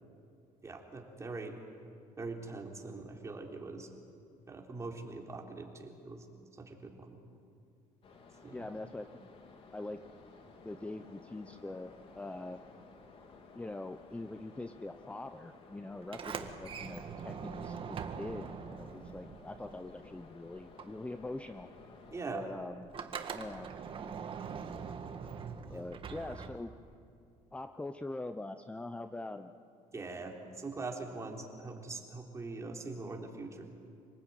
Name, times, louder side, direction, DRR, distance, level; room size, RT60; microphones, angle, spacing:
voice 1, 0.6-1.6 2.2-3.9 4.5-6.3 6.6-7.2 8.4-8.7 22.1-22.5 25.7-26.2 29.9-33.6, right 3 dB, 20° right, 1 dB, 3.8 m, -42 dB
sound 1, 8.0-22.2, left 4 dB, 45° left, 3.2 m, -56 dB
voice 2, 8.5-9.3 9.7-10.0 10.6-12.6 13.5-21.7 22.3-22.9 23.3-23.7 25.7-26.7 27.5-29.5, left 2 dB, 10° left, 8 dB, 0.8 m, -43 dB
Sliding door, 16.0-20.3 20.6-26.9, right 6 dB, 40° right, 1.8 m, -43 dB
27.0 x 19.0 x 9.3 m, 2.4 s
cardioid pair, 115°, 13 cm